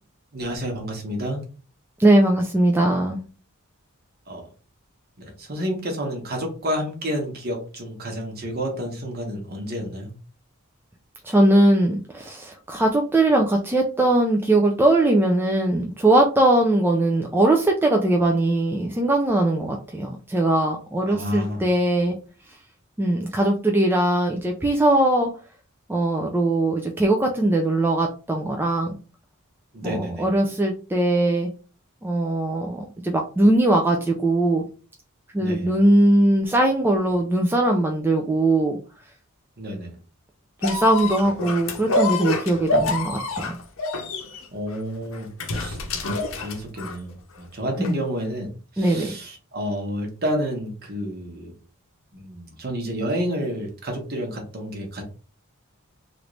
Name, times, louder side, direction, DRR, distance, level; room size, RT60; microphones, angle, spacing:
voice 1, 0.3-1.4 4.3-4.4 5.2-10.1 21.1-21.6 29.7-30.3 35.4-35.7 39.6-39.9 44.5-45.8 46.4-47.1 47.4-48.5 48.7-51.5 52.1-55.0, equal, 45° right, 2 dB, 1.1 m, -30 dB
voice 2, 2.0-3.2 11.2-22.2 23.0-25.3 25.9-29.0 29.8-31.5 32.0-34.6 35.3-38.8 40.6-43.5 47.8-48.0 48.8-49.1, right 1 dB, 10° right, 1 dB, 0.3 m, -20 dB
sound 1, 40.6-47.1 47.8-47.9, left 2 dB, 65° left, 0.7 m, -27 dB
3.1 x 2.5 x 3.1 m, 0.36 s
head